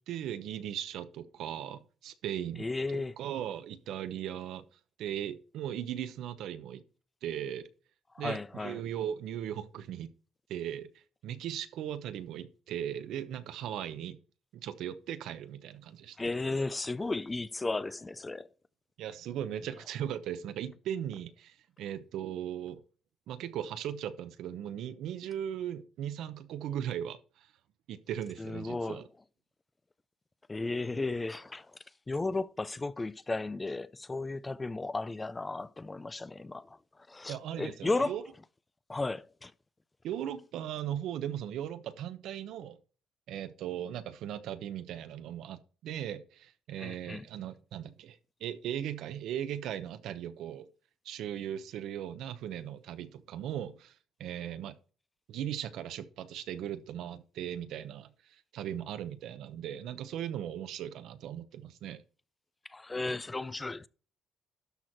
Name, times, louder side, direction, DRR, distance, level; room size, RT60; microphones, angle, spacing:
voice 1, 0.1-2.7 2.9-4.6 5.0-6.8 7.2-7.7 8.2-10.1 10.5-10.9 11.2-14.2 14.5-16.3 19.0-22.8 23.3-27.5 27.9-29.1 37.3-38.2 40.0-42.8 43.3-50.7 51.0-53.9 54.2-54.8 55.3-62.0, right 10 dB, 75° right, 0.9 m, -38 dB
voice 2, 2.6-3.1 8.2-8.8 16.2-18.5 28.4-29.0 30.5-31.7 32.1-36.7 37.1-38.2 38.9-39.5 46.8-47.3 62.7-63.9, left 3 dB, 15° left, 0.4 m, -34 dB
12.5 x 4.4 x 4.6 m
cardioid pair, 125°, 0 cm